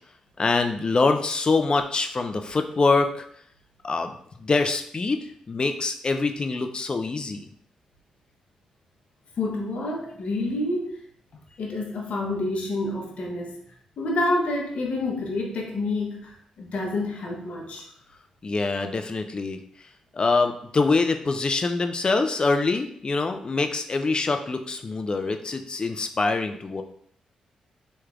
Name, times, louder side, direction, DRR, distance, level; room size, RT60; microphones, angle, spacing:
voice 1, 0.4-3.2 3.8-4.1 4.4-7.4 18.4-19.6 20.1-26.8, left 3 dB, 40° left, 7 dB, 0.4 m, -24 dB
voice 2, 9.4-11.0 11.6-13.5 14.0-17.8, left 2 dB, 65° left, 0 dB, 0.8 m, -28 dB
3.2 x 3.1 x 2.4 m, 0.65 s
supercardioid pair, 50°, 2 cm